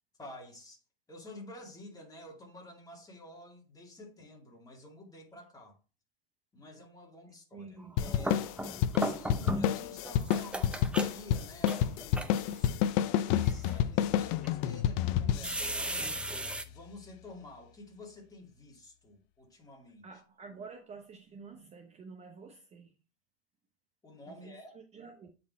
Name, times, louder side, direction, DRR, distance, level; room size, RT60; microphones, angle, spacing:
voice 1, 0.2-0.8 1.1-5.8 6.5-8.5 9.0-16.2 16.6-20.0 24.0-24.8, left 1 dB, 10° left, 2.4 m, -50 dB
voice 2, 7.5-7.9 15.2-15.6 20.0-22.9 24.3-25.3, right 4 dB, 20° right, 0.9 m, -49 dB
sound 1, 7.9-9.8 10.0-12.6 13.3-13.7 14.4-14.5 15.4-16.6, right 1 dB, 5° right, 0.5 m, -36 dB
sound 2, 8.0-16.8, left 10 dB, 50° left, 0.5 m, -30 dB
8.4 x 4.3 x 4.2 m
supercardioid pair, 130°, 29 cm